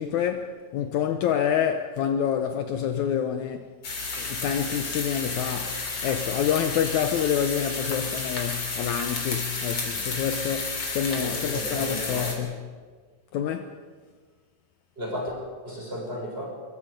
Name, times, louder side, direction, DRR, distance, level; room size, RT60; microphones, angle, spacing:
voice 1, 0.0-3.7 4.2-12.6 13.3-13.7, left 9 dB, 75° left, 2.1 m, -27 dB
sound 1, 3.8-12.3, left 3 dB, 40° left, 4.1 m, -32 dB
voice 2, 5.5-5.8 11.1-12.5 15.0-15.4 15.6-16.5, equal, 15° right, 7.1 m, -34 dB
25.5 x 22.5 x 5.2 m
omnidirectional pair, 3.7 m